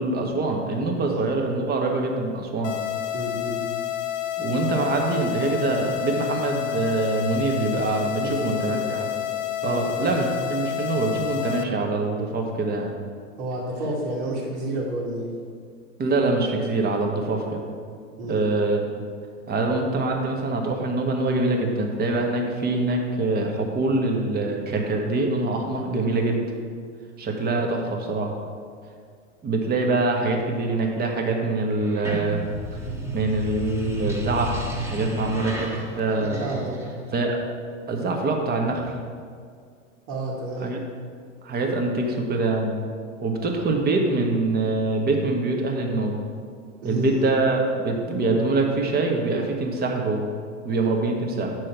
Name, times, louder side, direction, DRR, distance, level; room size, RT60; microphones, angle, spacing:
voice 1, 0.0-2.7 4.4-9.1 9.6-12.9 16.0-17.6 18.3-18.9 19.5-26.4 27.2-28.3 29.4-32.4 32.7-32.8 33.1-36.6 37.1-37.5 37.9-38.9 40.6-40.8 41.4-42.7 43.2-46.2 46.8-50.2 50.6-51.5, right 2 dB, 25° right, 2 dB, 1.3 m, -24 dB
sound 1, 2.6-11.6, left 12 dB, 75° left, 0.7 m, -29 dB
voice 2, 3.1-3.6 8.2-8.9 9.6-9.9 13.4-15.3 18.2-18.4 36.2-36.8 40.1-40.7 46.8-47.3, right 1 dB, 60° right, -7 dB, 2.1 m, -30 dB
sound 2, 31.8-37.1, right 1 dB, 5° right, 1.4 m, -32 dB
8.5 x 6.2 x 4.5 m, 2.1 s
hypercardioid pair, 110°, 38 cm